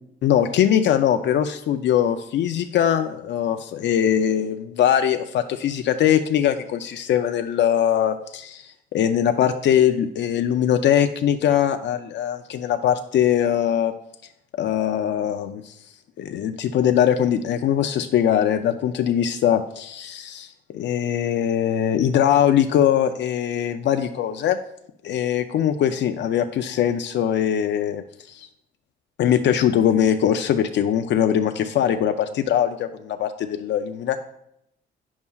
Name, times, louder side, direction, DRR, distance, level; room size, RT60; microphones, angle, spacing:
voice 1, 0.2-13.9 14.6-15.8 16.2-24.6 25.0-28.5 29.2-34.2, left 10 dB, 65° left, 7 dB, 0.4 m, -21 dB
9.4 x 7.1 x 2.3 m, 0.77 s
cardioid pair, 115°, 20 cm